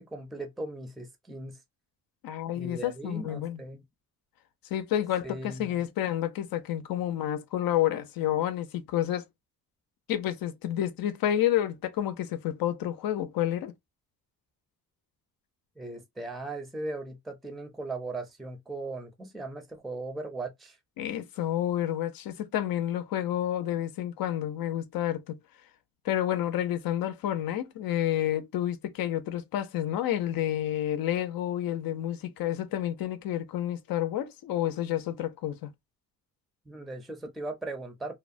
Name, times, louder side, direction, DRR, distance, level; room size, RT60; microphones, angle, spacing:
voice 1, 0.0-1.6 2.5-3.8 5.2-5.7 15.8-20.8 36.7-38.2, right 2 dB, ahead, 0.5 m, -38 dB
voice 2, 2.2-3.6 4.7-9.2 10.1-13.7 21.0-25.4 26.0-35.7, left 12 dB, 80° left, 0.6 m, -29 dB
2.8 x 2.1 x 2.4 m
cardioid pair, 130°, 35 cm